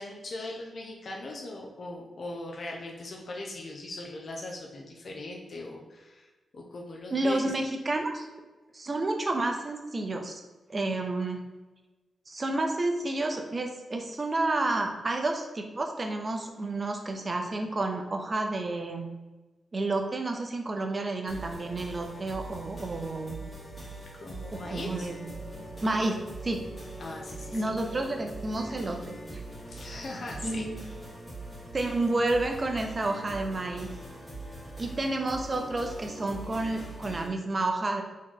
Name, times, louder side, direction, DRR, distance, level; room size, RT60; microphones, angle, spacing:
voice 1, 0.0-7.4 24.2-25.1 27.0-27.6 29.7-30.7, left 2 dB, 45° left, -1 dB, 0.6 m, -40 dB
voice 2, 7.1-8.3 8.7-10.4 10.7-11.5 12.3-19.1 19.7-23.4 24.5-25.3 25.8-26.6 27.5-29.0 29.3-29.4 30.4-30.8 31.7-33.9 34.8-38.0, right 2 dB, 30° right, 4 dB, 0.6 m, -30 dB
sound 1, 21.3-37.3, right 2 dB, 15° left, 1.4 m, -42 dB
4.3 x 3.0 x 3.7 m, 1.2 s
wide cardioid pair, 140°, 0 cm